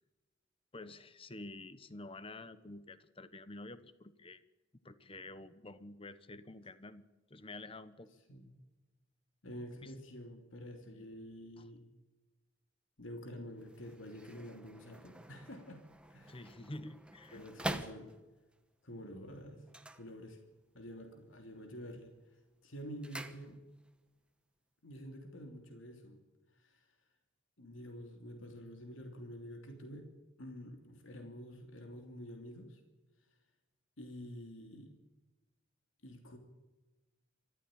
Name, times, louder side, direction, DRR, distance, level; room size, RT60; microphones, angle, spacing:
voice 1, 0.7-4.4 4.8-7.0 7.3-8.1 9.8-9.9 10.9-11.1 11.6-11.7 16.3-17.9, left 2 dB, 30° left, 13 dB, 1.1 m, -49 dB
voice 2, 9.4-11.8 13.0-16.4 17.3-18.1 18.8-19.6 19.9-20.4 20.7-22.1 22.6-23.6 24.8-26.2 26.6-26.8 27.6-30.1 30.4-32.8 34.0-34.9 36.0-36.4, equal, 85° left, 4 dB, 3.0 m, -48 dB
sound 1, 13.5-18.6 19.6-20.8 21.0-21.5 21.9-24.0 24.2-24.3, right 1 dB, 5° right, 1.1 m, -46 dB
23.5 x 14.5 x 8.9 m, 1.2 s
head